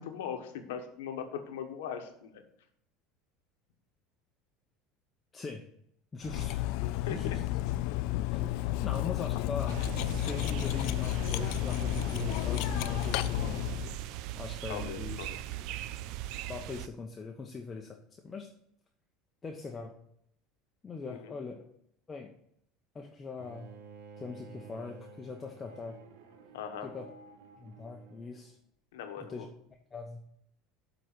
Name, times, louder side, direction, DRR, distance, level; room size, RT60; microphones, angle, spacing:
voice 1, 0.0-2.4 7.0-7.4 14.7-15.5 21.0-21.3 26.5-26.9 28.9-29.5, left 8 dB, 90° left, 6 dB, 1.1 m, -40 dB
voice 2, 5.3-5.6 6.1-6.6 7.1-7.4 8.3-13.5 14.3-15.3 16.5-18.0 18.2-18.5 19.4-19.9 20.8-21.7 22.1-22.3 22.9-23.7 24.2-26.0 26.8-27.1 27.6-28.6 29.2-29.5 29.9-30.2, left 4 dB, 20° left, 2 dB, 0.8 m, -41 dB
Cutlery silverware, 6.2-14.0, left 16 dB, 70° left, 0.3 m, -32 dB
sound 1, 9.7-16.9, right 14 dB, 65° right, 0.4 m, -40 dB
Bowed string instrument, 23.4-28.4, right 5 dB, 90° right, 1.0 m, -52 dB
7.5 x 4.0 x 6.6 m, 0.71 s
supercardioid pair, 115°, 0 cm